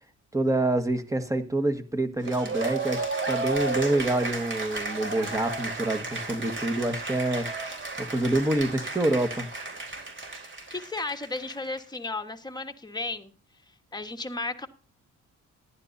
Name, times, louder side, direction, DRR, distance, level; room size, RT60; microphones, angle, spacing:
voice 1, 0.3-7.5 8.0-9.5, right 2 dB, 10° right, 9 dB, 1.6 m, -27 dB
Cheering / Applause, 2.2-11.8, right 3 dB, 40° right, 3.8 m, -33 dB
voice 2, 10.7-13.3 13.9-14.7, left 3 dB, 15° left, 6 dB, 1.4 m, -34 dB
15.0 x 11.5 x 2.7 m, 0.37 s
cardioid pair, 90°, 30 cm